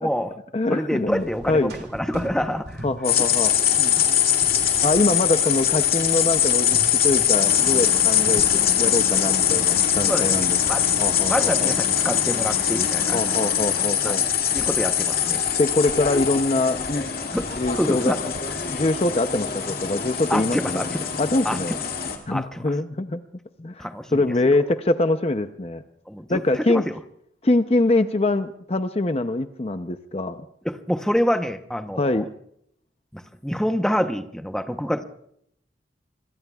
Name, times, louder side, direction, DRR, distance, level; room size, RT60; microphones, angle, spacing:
voice 1, 0.0-0.3 0.7-2.9 3.7-4.0 10.1-10.8 11.2-13.2 14.0-14.1 14.5-15.4 17.3-18.2 18.6-18.7 20.3-21.1 21.4-21.8 22.3-22.6 23.8-24.5 26.1-26.9 30.6-32.2 33.1-35.0, equal, 5° left, 7 dB, 0.8 m, -27 dB
voice 2, 0.5-1.7 2.8-3.5 4.8-6.8 7.0-10.6 10.9-11.7 13.1-14.2 15.6-17.1 17.6-18.2 18.7-20.8 21.2-21.8 22.3-23.2 23.6-25.8 26.3-26.9 27.4-30.4 31.9-32.3, left 2 dB, 35° left, 9 dB, 0.6 m, -24 dB
sound 1, 1.1-6.3 6.7-7.3 7.7-10.4 10.6-11.5 12.0-17.9, right 1 dB, 55° right, 2.8 m, -42 dB
sound 2, 3.0-22.2, left 9 dB, 55° left, 2.3 m, -22 dB
sound 3, 7.3-13.9, left 2 dB, 85° left, 1.4 m, -33 dB
26.5 x 22.0 x 2.3 m, 0.70 s
head